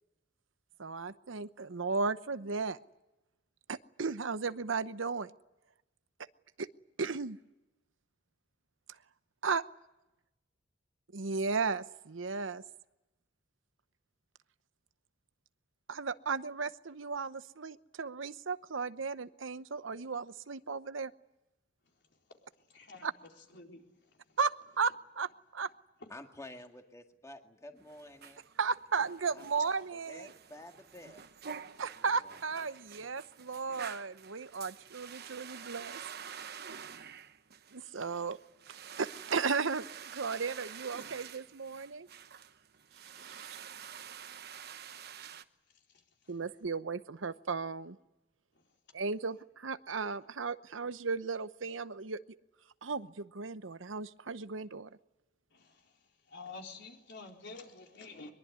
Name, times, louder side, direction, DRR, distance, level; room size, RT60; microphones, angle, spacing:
voice 1, 0.8-2.8 3.7-5.3 6.6-6.7 7.0-7.4 8.9-9.0 9.4-9.6 11.1-12.6 15.9-21.1 23.0-23.1 24.4-25.7 28.6-30.3 31.8-36.0 37.7-38.4 38.7-42.1 42.9-43.6 46.3-48.0 48.9-52.2 52.8-55.0, right 5 dB, 85° right, 0.9 m, -35 dB
voice 2, 22.7-23.1 23.5-23.8 43.3-43.4 55.5-55.7 56.3-58.3, left 3 dB, 65° left, 4.2 m, -48 dB
voice 3, 26.1-28.4 29.6-31.2 31.8-32.0, left 1 dB, 15° left, 2.0 m, -51 dB
sound 1, 27.8-45.4, right 7 dB, 55° right, 1.1 m, -48 dB
23.0 x 22.5 x 9.6 m
head